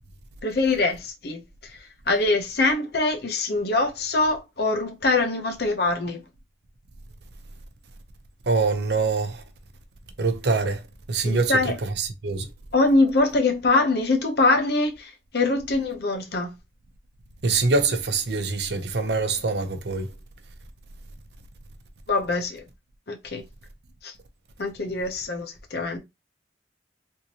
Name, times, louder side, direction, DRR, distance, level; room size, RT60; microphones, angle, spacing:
voice 1, 0.4-1.7 2.1-6.2 11.2-11.8 12.7-16.5 22.1-22.6 23.1-23.4 24.0-24.1 24.6-26.0, left 3 dB, 65° left, 0.9 m, -23 dB
voice 2, 8.5-9.4 10.2-10.8 11.1-12.5 17.4-20.1, right 3 dB, 65° right, 0.7 m, -24 dB
3.6 x 2.7 x 2.8 m
head